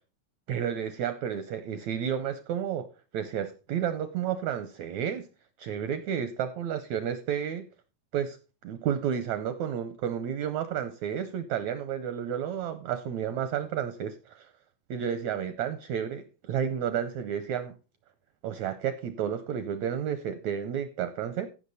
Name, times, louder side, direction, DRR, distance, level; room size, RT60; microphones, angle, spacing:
voice 1, 0.5-5.3 5.6-7.7 8.1-8.4 8.6-14.5 14.9-17.7 18.4-21.5, right 8 dB, 80° right, 1.6 m, -31 dB
15.0 x 6.0 x 4.1 m
omnidirectional pair, 4.0 m